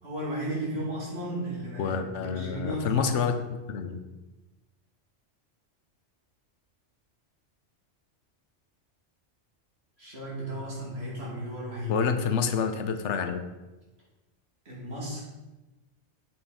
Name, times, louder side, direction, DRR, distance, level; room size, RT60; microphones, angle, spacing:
voice 1, 0.0-3.3 10.0-12.1 14.6-15.2, equal, 60° right, -5 dB, 2.8 m, -34 dB
voice 2, 1.8-3.3 3.7-4.0 11.9-13.4, left 6 dB, 75° left, 8 dB, 1.0 m, -28 dB
7.7 x 5.6 x 4.2 m, 1.1 s
omnidirectional pair, 1.2 m